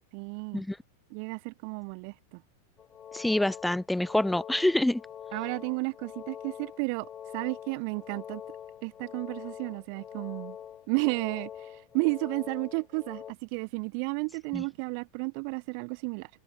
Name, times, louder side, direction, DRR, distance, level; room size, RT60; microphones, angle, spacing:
voice 1, 0.1-0.6 1.1-2.4 5.3-8.4 8.8-10.6 10.9-16.3, right 40 dB or more, 45° right, 0.5 m, -33 dB
sound 1, 2.8-13.3, left 9 dB, 25° left, 3.5 m, -44 dB
voice 2, 3.1-5.0 14.5-14.6, left 1 dB, 5° left, 0.5 m, -26 dB
open air
figure-of-eight pair, 90°, 0 cm